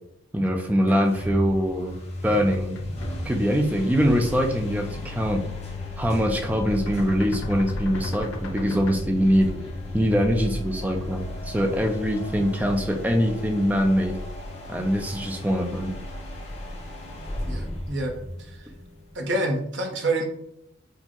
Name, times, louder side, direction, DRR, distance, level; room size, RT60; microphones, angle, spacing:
voice 1, 0.3-2.7 3.2-5.4 6.0-9.5 9.9-14.2 14.7-15.9, equal, 10° right, 3 dB, 0.3 m, -23 dB
sound 1, 0.8-19.3, left 1 dB, 30° left, 0.8 m, -34 dB
sound 2, 2.3-4.1 4.5-4.8 5.1-5.3 5.6-9.0, left 1 dB, 85° left, 0.6 m, -37 dB
voice 2, 17.5-18.1 18.4-18.5 19.1-20.2, right 2 dB, 60° right, 2 dB, 0.6 m, -27 dB
4.3 x 2.0 x 2.9 m, 0.77 s
head